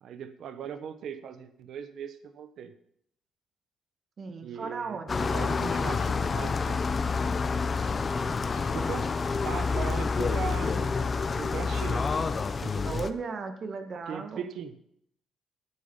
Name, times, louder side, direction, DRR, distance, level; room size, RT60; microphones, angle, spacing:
voice 1, 0.0-2.7 4.4-6.8 8.5-9.1 9.4-10.9 11.4-12.0 12.5-12.9 14.1-14.8, right 7 dB, 70° right, 10 dB, 1.1 m, -39 dB
voice 2, 4.2-5.2 12.8-14.5, right 4 dB, 50° right, 6 dB, 1.7 m, -36 dB
sound 1, 5.1-13.1, left 4 dB, 35° left, 0.8 m, -28 dB
10.5 x 8.8 x 5.5 m, 0.70 s
cardioid pair, 90°, 0 cm